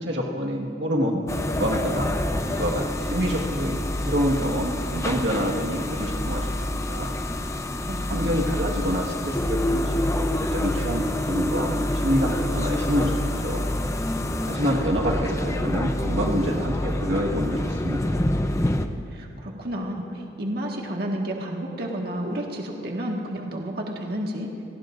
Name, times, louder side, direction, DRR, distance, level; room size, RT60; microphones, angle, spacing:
voice 1, 0.0-2.2 2.4-7.1 8.1-10.3 10.5-13.2 13.4-13.6 14.5-18.2, equal, 85° right, -1 dB, 1.6 m, -27 dB
sound 1, 1.3-18.9, left 1 dB, 15° left, 0.6 m, -27 dB
voice 2, 7.8-8.4 19.1-24.6, equal, 60° right, 0 dB, 1.7 m, -31 dB
28.5 x 18.5 x 2.6 m, 2.6 s
head